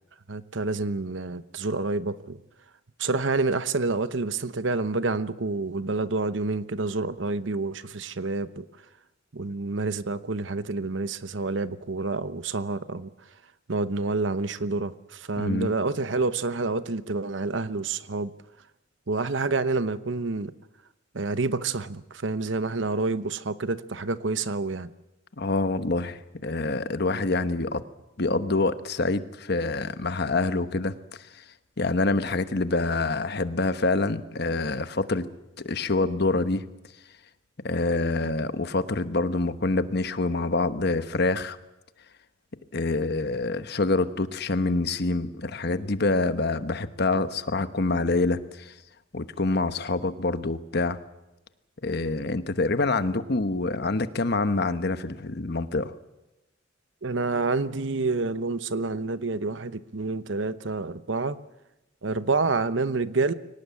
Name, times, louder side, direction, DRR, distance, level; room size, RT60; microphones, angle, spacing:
voice 1, 0.3-2.4 3.0-8.6 9.3-13.1 13.7-18.3 19.1-20.5 21.1-24.9 57.0-61.4 62.0-63.3, right 3 dB, 70° right, 0.9 m, -28 dB
voice 2, 15.4-15.7 25.4-27.8 28.2-31.4 31.8-35.3 35.6-36.7 37.6-41.6 42.7-48.7 49.1-51.0 51.8-55.9, left 3 dB, 55° left, 1.1 m, -26 dB
23.5 x 18.5 x 8.4 m
head